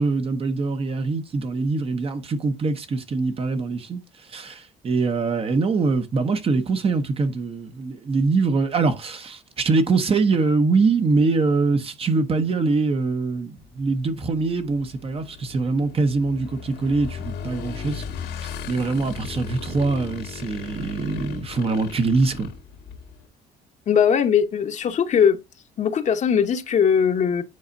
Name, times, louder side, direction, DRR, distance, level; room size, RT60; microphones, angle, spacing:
voice 1, 0.0-4.0 4.3-18.0 18.7-22.5, right 3 dB, 35° right, 1.0 m, -23 dB
Motorcycle / Engine, 13.6-23.3, left 6 dB, 80° left, 2.0 m, -37 dB
voice 2, 23.9-25.4 25.8-27.4, left 7 dB, 45° left, 1.0 m, -20 dB
9.6 x 4.1 x 2.6 m
cardioid pair, 110°, 17 cm